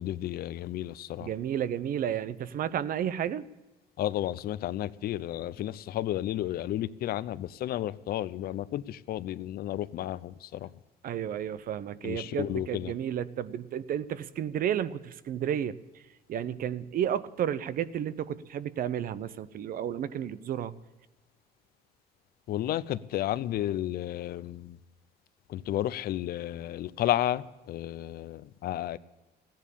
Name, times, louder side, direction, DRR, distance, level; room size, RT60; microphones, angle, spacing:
voice 1, 0.0-1.3 4.0-10.7 12.0-12.9 22.5-24.8 25.5-29.0, left 13 dB, 65° left, 0.7 m, -32 dB
voice 2, 1.2-3.4 11.0-15.8 16.3-20.7, right 9 dB, 55° right, 0.8 m, -32 dB
15.0 x 10.5 x 8.5 m
cardioid pair, 110°, 17 cm